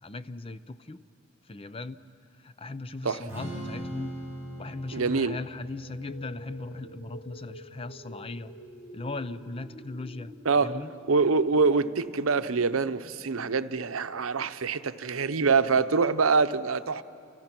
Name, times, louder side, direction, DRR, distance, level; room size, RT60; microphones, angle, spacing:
voice 1, 0.0-1.0 1.5-2.0 2.4-4.2 4.6-8.5 8.9-10.9, left 3 dB, 25° left, 13 dB, 0.6 m, -38 dB
Strum, 3.3-9.5, equal, 15° right, 6.2 m, -42 dB
voice 2, 4.9-5.4 10.4-10.7 11.1-17.0, right 4 dB, 90° right, 12 dB, 0.8 m, -25 dB
sound 1, 5.7-14.7, left 1 dB, 75° left, 4.6 m, -49 dB
29.5 x 28.5 x 6.0 m, 2.5 s
head